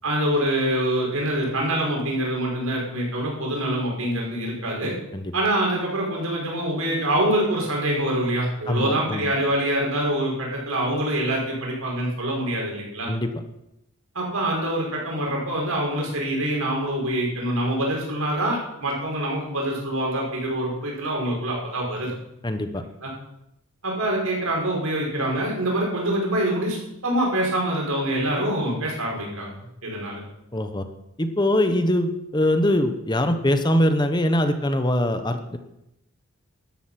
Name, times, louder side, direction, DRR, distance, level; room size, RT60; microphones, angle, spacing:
voice 1, 0.0-4.9 5.3-13.1 14.1-22.1 23.0-23.1 23.8-29.5 29.8-30.2, right 1 dB, 85° right, -2 dB, 5.9 m, -25 dB
voice 2, 8.7-9.3 13.1-13.3 22.4-22.8 30.5-30.8 31.2-35.6, left 1 dB, 20° left, 8 dB, 1.0 m, -22 dB
13.0 x 12.0 x 5.9 m, 0.85 s
head